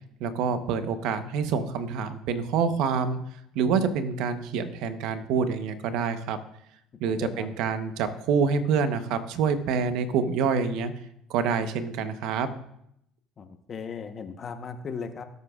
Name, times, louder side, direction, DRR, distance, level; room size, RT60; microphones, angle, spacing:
voice 1, 0.2-3.2 3.5-6.4 7.0-10.9 11.3-12.5, right 6 dB, 75° right, 9 dB, 1.0 m, -26 dB
voice 2, 7.1-7.5 13.4-15.2, left 6 dB, 40° left, 7 dB, 1.1 m, -37 dB
17.5 x 8.1 x 2.5 m, 0.76 s
supercardioid pair, 95°, 0 cm